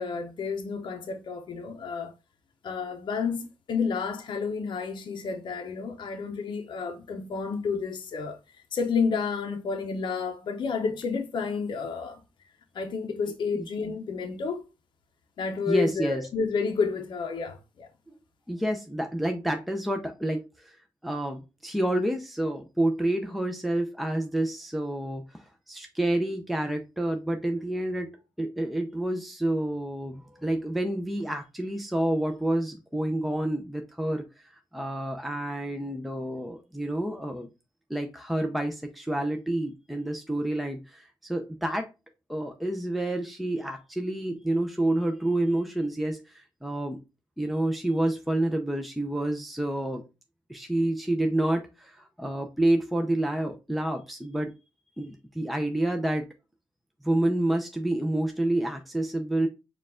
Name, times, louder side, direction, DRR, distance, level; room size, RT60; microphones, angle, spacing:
voice 1, 0.0-2.1 2.6-8.4 8.7-12.2 12.7-14.6 15.4-17.9, left 5 dB, 60° left, 0.6 m, -30 dB
voice 2, 15.7-16.3 18.1-18.2 18.5-20.8 21.0-28.1 28.4-37.5 37.9-41.9 42.3-47.0 47.4-50.0 50.5-54.5 55.0-56.3 57.0-59.5, right 1 dB, ahead, 0.5 m, -29 dB
4.5 x 2.4 x 3.6 m
cardioid pair, 85°, 9 cm